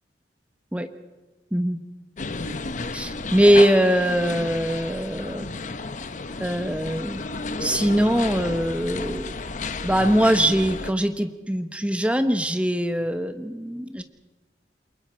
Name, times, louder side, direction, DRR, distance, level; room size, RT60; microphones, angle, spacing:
sound 1, 2.2-10.9, left 3 dB, 45° left, 0.8 m, -32 dB
voice 1, 2.9-5.5 6.4-7.2 7.6-9.3 9.8-14.0, equal, 5° right, 8 dB, 1.1 m, -22 dB
28.5 x 22.5 x 4.5 m, 1.2 s
head